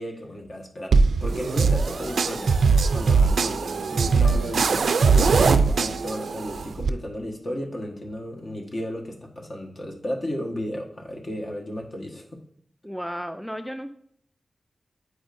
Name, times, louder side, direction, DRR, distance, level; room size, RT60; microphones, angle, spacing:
voice 1, 0.0-4.9 5.3-12.4, equal, 50° left, 1 dB, 1.3 m, -34 dB
sound 1, 0.9-6.9, right 4 dB, 85° right, 0.3 m, -21 dB
Piano, 4.2-8.2 8.6-9.0, right 3 dB, 30° left, 2.0 m, -47 dB
voice 2, 12.8-13.9, equal, 5° left, 8 dB, 0.3 m, -33 dB
8.0 x 4.9 x 2.6 m, 0.66 s
cardioid pair, 65°, 0 cm